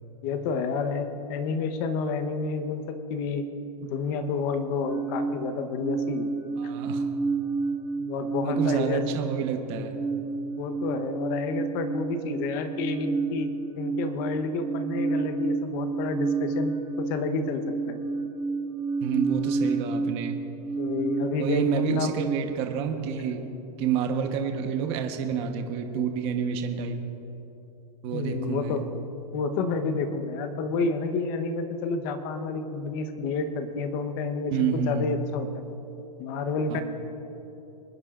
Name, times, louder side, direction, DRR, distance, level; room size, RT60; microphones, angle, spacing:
voice 1, 0.2-3.4 3.9-6.3 8.0-9.0 10.6-13.5 13.8-18.0 20.8-22.2 28.1-28.9 29.3-35.5 36.2-36.8, left 4 dB, 35° left, 8 dB, 1.0 m, -29 dB
sound 1, 4.8-22.4, right 4 dB, 5° right, 1.5 m, -30 dB
voice 2, 6.6-7.0 8.4-10.0 19.0-20.4 21.4-23.4 23.8-27.0 28.0-28.8 34.5-35.1 36.7-36.8, right 7 dB, 30° right, 5 dB, 1.1 m, -29 dB
26.0 x 10.0 x 2.5 m, 3.0 s
hypercardioid pair, 155°, 21 cm